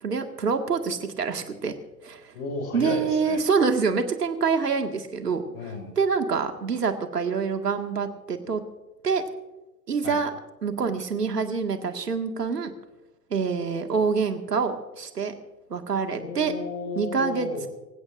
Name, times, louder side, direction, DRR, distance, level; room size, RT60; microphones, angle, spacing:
voice 1, 0.0-1.7 2.0-2.3 2.7-5.4 6.0-8.6 9.0-9.2 9.9-10.3 10.6-12.7 13.3-15.3 15.7-16.5 17.0-17.7, right 5 dB, 85° right, 6 dB, 2.0 m, -26 dB
voice 2, 2.3-3.4 5.5-5.9 10.0-10.2 16.2-17.7, left 3 dB, 65° left, 3 dB, 6.1 m, -33 dB
25.0 x 17.0 x 2.6 m, 1.1 s
figure-of-eight pair, 95°, 47 cm